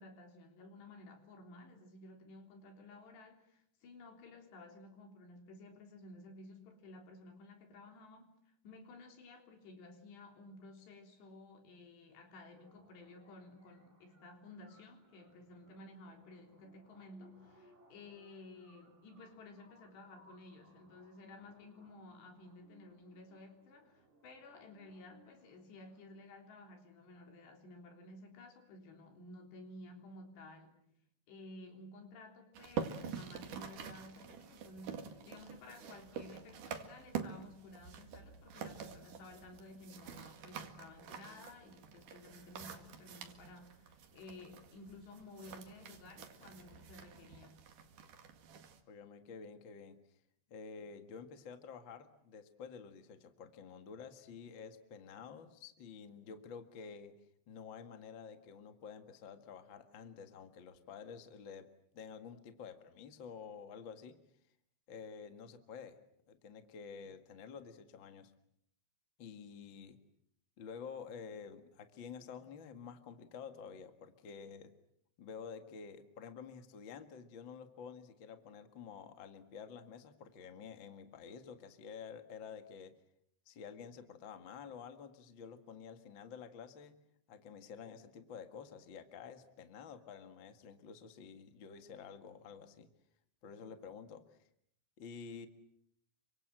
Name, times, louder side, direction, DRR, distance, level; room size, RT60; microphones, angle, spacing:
voice 1, 0.0-8.4 8.6-30.9 31.3-47.7, left 2 dB, 70° left, 4 dB, 5.6 m, -54 dB
sound 1, 12.6-26.5, right 1 dB, 15° right, 3.8 m, -67 dB
sound 2, 32.5-48.8, right 7 dB, 55° right, 3.1 m, -47 dB
voice 2, 48.9-50.0 50.5-57.1 57.5-61.7 61.9-64.2 64.9-66.0 66.3-68.3 69.2-70.0 70.6-74.7 75.2-83.0 83.4-87.0 87.3-92.9 93.4-94.4 95.0-95.5, left 6 dB, 50° left, 8 dB, 1.4 m, -50 dB
29.5 x 25.0 x 7.7 m, 0.71 s
omnidirectional pair, 5.1 m